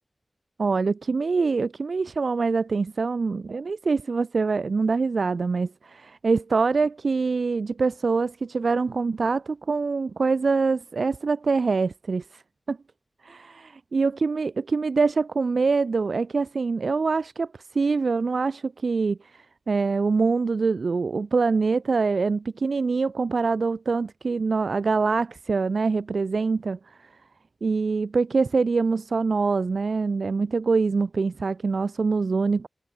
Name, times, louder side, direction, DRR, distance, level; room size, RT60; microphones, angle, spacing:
voice 1, 0.6-12.4 12.7-12.8 13.2-27.1 27.6-32.7, right 4 dB, 75° right, 0.8 m, -24 dB
wide cardioid pair, 75°, 0 cm